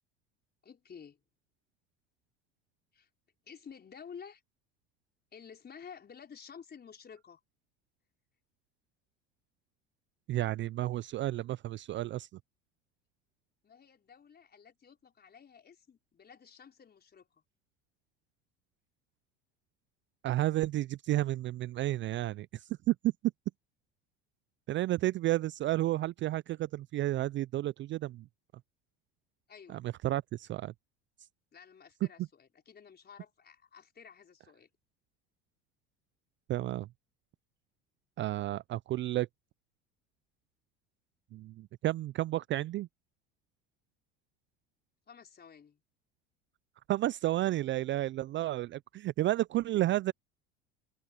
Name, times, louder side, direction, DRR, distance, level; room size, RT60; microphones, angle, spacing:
voice 1, 0.6-1.2 2.9-3.1 3.4-4.4 5.3-7.4 13.6-17.3 29.5-29.8 31.5-34.7 45.1-45.8, left 7 dB, 30° left, 5.2 m, -52 dB
voice 2, 10.3-12.3 20.2-23.0 24.7-28.3 29.7-30.7 36.5-36.9 38.2-39.3 41.3-42.9 46.9-50.1, right 15 dB, 40° right, 0.4 m, -32 dB
hypercardioid pair, 85°, 31 cm